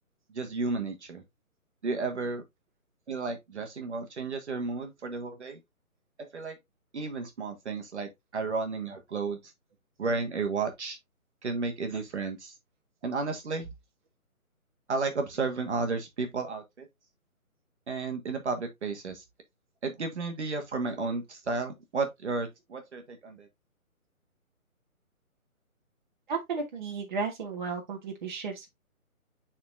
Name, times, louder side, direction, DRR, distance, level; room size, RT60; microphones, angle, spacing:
voice 1, 0.3-1.2 1.8-2.4 3.1-5.6 6.2-6.6 6.9-9.5 10.0-11.0 11.4-12.6 13.0-13.7 14.9-16.9 17.9-19.2 19.8-23.5, right 4 dB, 50° right, 1.5 m, -33 dB
voice 2, 26.3-28.7, right 5 dB, 35° right, 1.5 m, -34 dB
9.5 x 4.2 x 2.5 m
hypercardioid pair, 160°, 43 cm